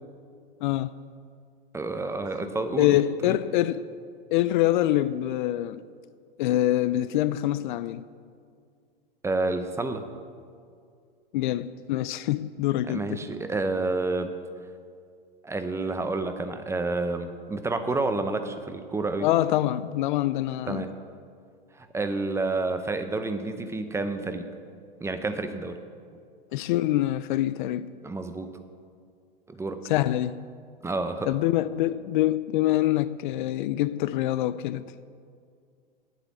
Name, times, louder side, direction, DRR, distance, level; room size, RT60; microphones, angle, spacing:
voice 1, 0.6-0.9 2.8-3.8 4.3-5.8 6.4-8.0 11.3-13.2 19.2-20.8 26.5-27.9 29.9-30.4 31.2-34.8, left 14 dB, 55° left, 0.4 m, -25 dB
voice 2, 1.7-3.4 9.2-10.1 12.9-14.4 15.4-19.3 20.7-20.9 21.8-24.5 25.0-25.8 28.0-28.6 29.5-29.8 30.8-31.3, right 3 dB, 10° right, 0.6 m, -29 dB
8.7 x 8.3 x 7.2 m
hypercardioid pair, 110°, 29 cm